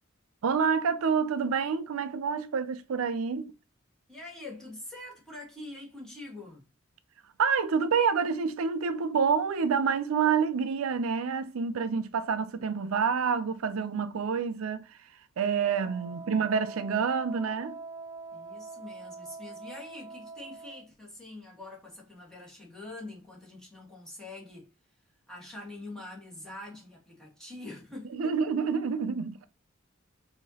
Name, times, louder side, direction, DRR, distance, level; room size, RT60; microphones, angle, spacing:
voice 1, 0.4-3.5 7.4-15.0 15.4-17.8 28.1-29.5, right 6 dB, 85° right, 0.4 m, -28 dB
voice 2, 4.1-6.6 16.1-16.3 18.3-24.7 25.3-28.3, left 2 dB, 5° left, 1.6 m, -45 dB
Wind instrument woodwind instrument, 15.6-20.8, right 4 dB, 15° right, 0.7 m, -44 dB
4.7 x 2.8 x 2.8 m
head